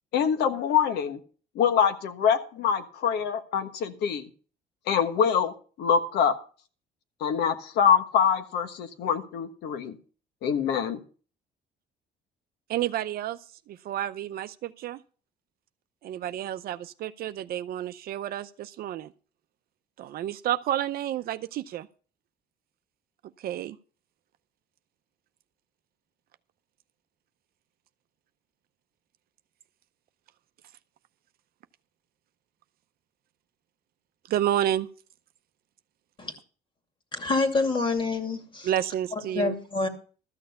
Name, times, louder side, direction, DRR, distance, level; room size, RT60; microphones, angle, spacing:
voice 1, 0.1-1.2 1.5-4.3 4.9-5.5 5.8-6.3 7.2-9.9 10.4-11.0, left 7 dB, 80° left, 1.3 m, -24 dB
voice 2, 12.7-13.4 13.7-15.0 16.0-19.1 20.0-21.9 23.4-23.8 34.3-34.9 38.6-39.6, right 11 dB, 65° right, 0.6 m, -30 dB
voice 3, 37.1-38.7 39.3-39.9, left 3 dB, 30° left, 2.5 m, -27 dB
13.5 x 6.5 x 6.9 m
cardioid pair, 110°, 17 cm